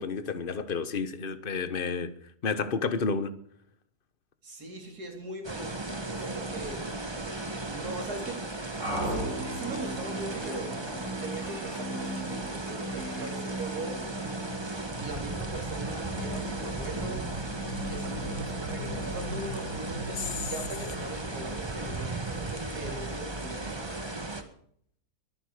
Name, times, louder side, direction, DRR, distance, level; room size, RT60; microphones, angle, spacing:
voice 1, 0.0-2.1 2.4-3.3 20.2-20.3, left 5 dB, 35° left, 1.3 m, -30 dB
voice 2, 4.4-5.8 6.1-6.8 7.6-8.4 9.0-10.8 11.2-14.1 15.0-17.3 17.8-24.3, right 2 dB, 70° right, 4.1 m, -40 dB
sound 1, 5.4-24.4, right 2 dB, 15° right, 1.6 m, -36 dB
sound 2, 8.8-21.7, right 1 dB, 50° right, 4.2 m, -38 dB
sound 3, 10.3-11.1 11.3-12.5 12.8-13.4 13.7-13.9 14.7-15.3 15.8-15.9 17.4-17.5 17.8-18.2, left 1 dB, 65° left, 4.2 m, -52 dB
22.5 x 9.9 x 5.0 m
omnidirectional pair, 1.7 m